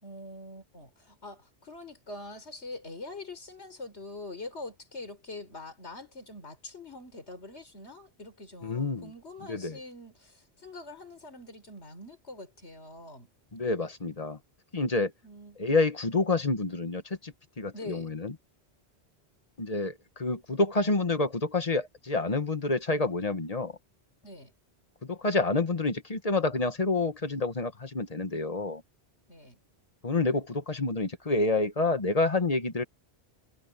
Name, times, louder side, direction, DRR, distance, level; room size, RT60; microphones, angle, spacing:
voice 1, 0.0-13.3 15.2-15.6 17.7-18.1 24.2-24.5 29.3-29.6, left 2 dB, 90° left, 4.3 m, -44 dB
voice 2, 8.6-9.1 9.5-9.8 13.5-14.4 14.7-15.1 15.6-18.3 19.6-23.7 25.0-28.8 30.0-32.8, left 3 dB, 35° left, 1.3 m, -28 dB
omnidirectional pair, 1.1 m